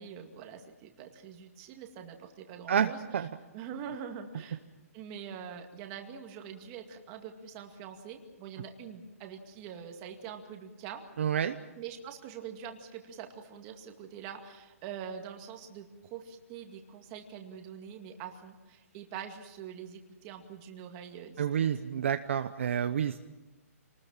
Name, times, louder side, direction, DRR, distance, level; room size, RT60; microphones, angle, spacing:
voice 1, 0.0-3.3 3.5-4.6 4.9-11.0 11.8-21.7, right 8 dB, 20° right, 4 dB, 2.2 m, -44 dB
voice 2, 2.7-3.3 11.2-11.6 21.4-23.2, right 8 dB, 50° right, 9 dB, 1.0 m, -29 dB
28.0 x 20.0 x 7.5 m, 1.1 s
hypercardioid pair, 170°, 8 cm